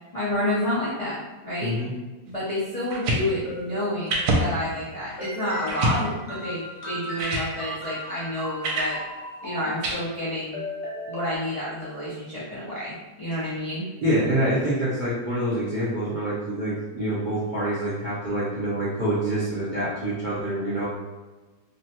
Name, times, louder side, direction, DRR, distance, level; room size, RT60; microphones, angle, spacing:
voice 1, 0.1-1.2 1.4-1.8 2.2-9.0 9.4-10.6 11.1-13.9, left 1 dB, 70° left, -10 dB, 0.3 m, -29 dB
voice 2, 1.6-1.9 14.0-20.9, right 1 dB, 55° right, -11 dB, 0.5 m, -26 dB
sound 1, 2.8-3.2 4.1-4.4 4.9-5.0 5.7-6.0 6.8-6.9 7.2-7.5 8.6-8.9 9.8-9.9, right 1 dB, 75° right, 1.1 m, -24 dB
sound 2, 3.1-4.5 5.2-11.4, left 1 dB, 25° left, 0.6 m, -37 dB
2.9 x 2.2 x 2.8 m, 1.2 s
omnidirectional pair, 1.8 m